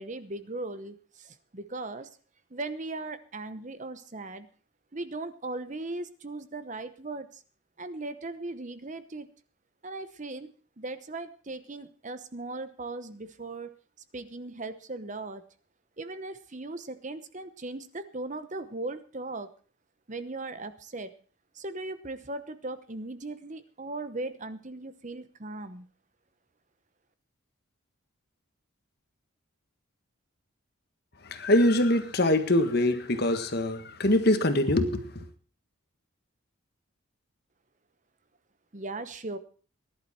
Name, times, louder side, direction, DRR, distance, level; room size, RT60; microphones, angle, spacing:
voice 1, 0.0-2.1 2.5-4.5 4.9-7.4 7.8-9.3 9.8-10.5 10.8-13.7 14.1-15.4 16.0-19.5 20.1-21.1 21.5-25.9 38.7-39.4, right 2 dB, 35° right, 0.9 m, -38 dB
voice 2, 31.2-35.3, left 1 dB, 50° left, 1.6 m, -24 dB
18.5 x 11.0 x 4.4 m
head